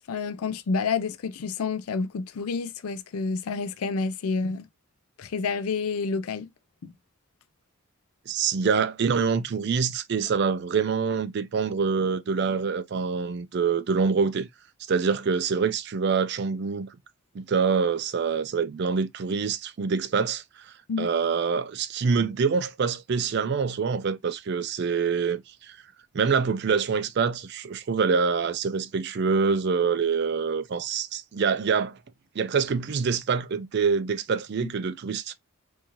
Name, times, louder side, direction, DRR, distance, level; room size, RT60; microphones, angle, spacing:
voice 1, 0.1-4.7 5.2-6.5 6.8-6.9 20.9-21.1 34.6-34.7, left 4 dB, 90° left, 0.4 m, -29 dB
voice 2, 8.3-14.5 14.9-16.9 17.3-25.8 26.1-32.0 32.4-35.3, right 5 dB, 50° right, 0.4 m, -25 dB
3.7 x 2.7 x 2.9 m
head